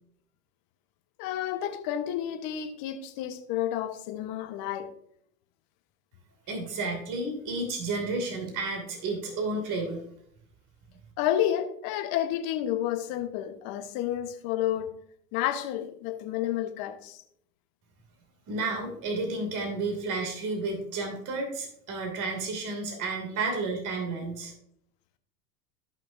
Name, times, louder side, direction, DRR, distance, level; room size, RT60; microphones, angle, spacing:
voice 1, 1.2-4.9 11.2-14.9 15.3-17.2, left 11 dB, 50° left, 1.3 m, -30 dB
voice 2, 6.5-10.0 18.5-24.5, right 3 dB, 40° right, 2.9 m, -31 dB
14.0 x 5.9 x 2.7 m
hypercardioid pair, 95°, 47 cm